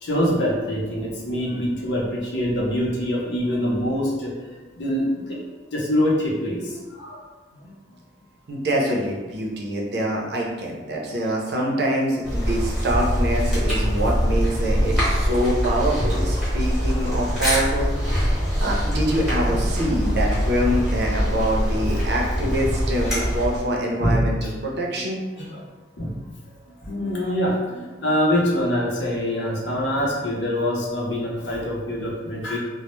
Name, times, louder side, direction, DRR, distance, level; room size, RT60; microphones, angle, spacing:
voice 1, 0.0-5.4 5.7-7.3 7.6-7.7 10.9-11.0 13.6-13.7 14.7-15.7 19.4-19.7 22.4-22.5 23.0-23.2 24.0-24.3 25.3-25.6 26.0-26.1 26.8-32.6, equal, 75° left, -3 dB, 0.6 m, -25 dB
voice 2, 8.5-17.9 18.2-25.2, equal, 60° right, -1 dB, 0.5 m, -25 dB
sound 1, 12.2-23.7, equal, ahead, 0.8 m, -23 dB
2.1 x 2.0 x 3.0 m, 1.2 s
head